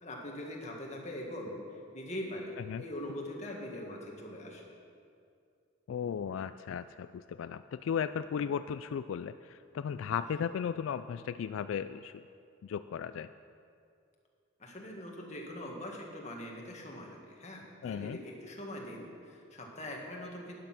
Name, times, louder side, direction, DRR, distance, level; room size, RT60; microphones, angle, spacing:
voice 1, 0.0-4.7 14.6-20.5, left 1 dB, 35° left, 0 dB, 1.8 m, -42 dB
voice 2, 5.9-12.2 12.6-13.3 17.8-18.2, left 7 dB, 85° left, 12 dB, 0.3 m, -36 dB
12.0 x 9.8 x 5.9 m, 2.4 s
head